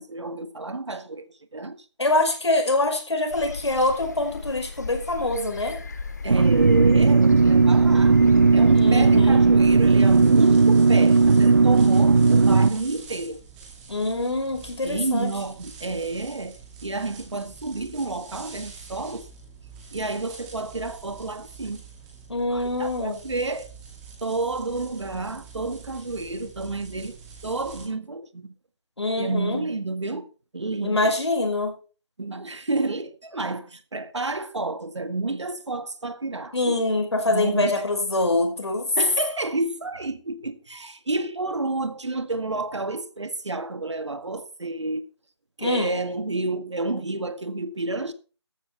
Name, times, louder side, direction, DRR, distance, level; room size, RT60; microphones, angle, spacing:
voice 1, 0.0-1.9 6.2-8.2 8.5-13.4 14.8-19.3 19.9-21.8 22.5-23.7 24.2-27.2 27.4-28.5 29.2-30.3 30.5-31.1 32.2-36.8 37.3-37.8 39.0-45.1 45.6-48.1, right 2 dB, 80° right, 1.8 m, -30 dB
voice 2, 2.0-5.8 8.8-9.4 13.9-15.3 22.3-23.2 29.0-29.6 30.8-31.8 36.5-38.9 45.6-45.9, left 2 dB, 70° left, 5.5 m, -24 dB
sound 1, 3.3-10.3, left 4 dB, 35° left, 1.3 m, -37 dB
sound 2, 6.3-12.7, right 4 dB, 45° right, 0.7 m, -16 dB
sound 3, 9.8-27.8, right 5 dB, 5° right, 2.4 m, -45 dB
14.0 x 12.0 x 3.4 m
figure-of-eight pair, 170°, 15 cm